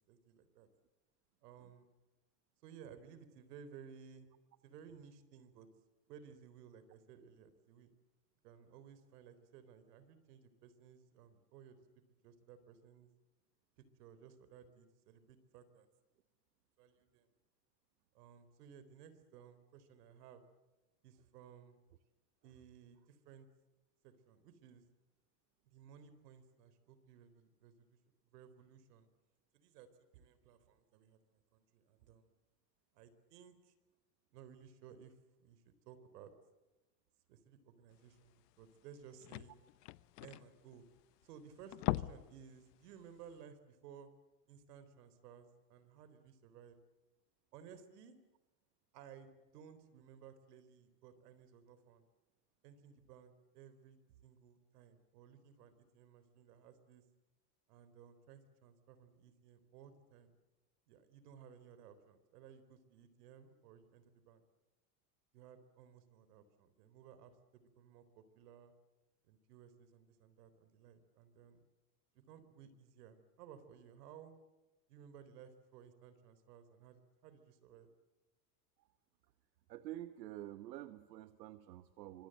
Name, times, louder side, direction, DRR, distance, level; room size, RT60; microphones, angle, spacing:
voice 1, 0.1-0.7 1.4-1.9 2.6-4.3 4.6-5.7 6.1-7.9 8.4-11.8 12.2-13.1 13.8-15.9 16.8-17.3 18.1-20.4 21.0-21.8 22.4-23.5 24.0-24.8 25.7-28.0 28.3-29.1 29.5-29.9 30.1-32.3 32.9-33.7 34.3-36.3 37.3-39.5 40.2-40.8 41.2-44.1 44.5-46.8 47.5-48.2 48.9-52.1 52.6-54.0 54.2-57.0 57.7-60.3 60.9-64.4 65.3-68.7 69.2-71.7 72.1-74.3 74.9-77.9, right 8 dB, 70° right, 12 dB, 3.9 m, -58 dB
sound 1, 38.3-38.4 38.6-38.7 38.9-41.2 41.6-42.4 42.7-42.9 43.3-43.4, left 18 dB, 75° left, 0.9 m, -40 dB
voice 2, 79.7-82.3, right 14 dB, 90° right, 11 dB, 1.3 m, -48 dB
26.5 x 25.5 x 7.8 m, 1.1 s
supercardioid pair, 150°, 49 cm